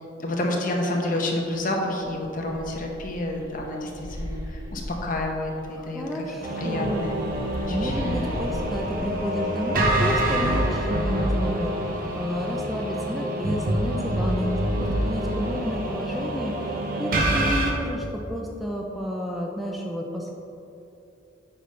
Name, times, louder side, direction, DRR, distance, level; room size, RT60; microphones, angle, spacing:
voice 1, 0.2-3.9 4.2-6.0 6.6-7.2 7.6-8.2, left 1 dB, 45° left, 0 dB, 1.0 m, -29 dB
sound 1, 1.6-1.7 2.0-5.7 6.6-10.2, equal, 20° right, 1.4 m, -37 dB
voice 2, 5.7-7.1 7.5-11.7 12.2-20.3, equal, ahead, -1 dB, 0.5 m, -31 dB
sound 2, 6.4-17.7, right 1 dB, 50° right, 0.9 m, -26 dB
8.8 x 5.3 x 3.3 m, 2.8 s
head